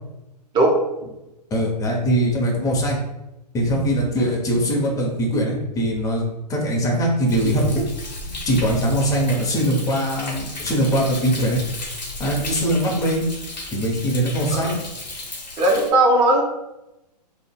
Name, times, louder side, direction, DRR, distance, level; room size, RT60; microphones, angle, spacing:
voice 1, 1.5-3.0 3.5-6.2 6.5-7.7 8.4-11.6 12.2-13.2 13.7-14.8, right 1 dB, 15° left, -1 dB, 0.7 m, -21 dB
Thunder, 7.3-15.9, left 2 dB, 90° left, 0.8 m, -34 dB
voice 2, 15.6-16.4, right 1 dB, 20° right, 0 dB, 0.7 m, -17 dB
3.7 x 2.1 x 2.3 m, 0.95 s
hypercardioid pair, 120°, 21 cm